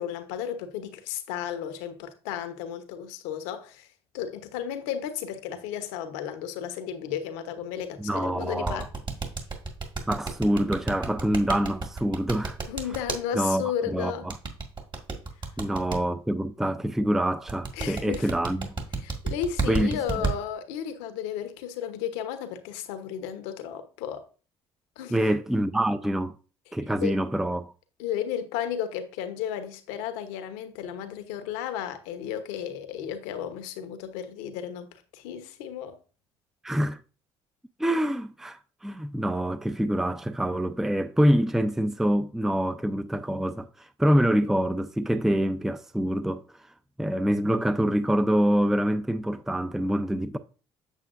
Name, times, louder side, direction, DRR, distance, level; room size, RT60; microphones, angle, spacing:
voice 1, 0.0-3.9 4.1-8.9 12.7-14.3 17.7-18.3 19.0-24.2 25.0-25.2 27.0-27.2 28.0-36.0, left 9 dB, 80° left, 1.1 m, -33 dB
voice 2, 8.0-8.9 10.1-12.6 13.3-13.6 13.9-14.4 15.6-18.7 19.7-20.3 25.1-26.3 26.7-27.7 36.6-37.0 37.8-46.4 47.0-50.4, equal, 5° right, 0.5 m, -26 dB
sound 1, 8.7-13.2 14.3-16.0 17.5-20.3, right 4 dB, 35° right, 1.9 m, -30 dB
8.2 x 7.0 x 2.6 m
hypercardioid pair, 60°, 14 cm